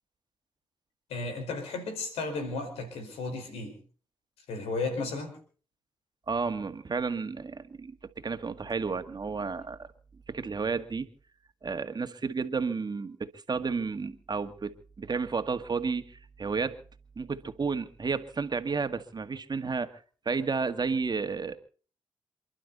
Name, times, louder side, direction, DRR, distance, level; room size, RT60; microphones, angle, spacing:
voice 1, 1.1-3.8 4.5-5.4, left 3 dB, 80° left, 7 dB, 4.8 m, -34 dB
voice 2, 6.3-9.9 10.3-11.1 11.6-14.7 15.0-16.8 17.2-20.0 20.3-21.6, right 4 dB, 45° right, 9 dB, 1.9 m, -32 dB
28.0 x 12.0 x 4.1 m, 0.41 s
hypercardioid pair, 40°, 10 cm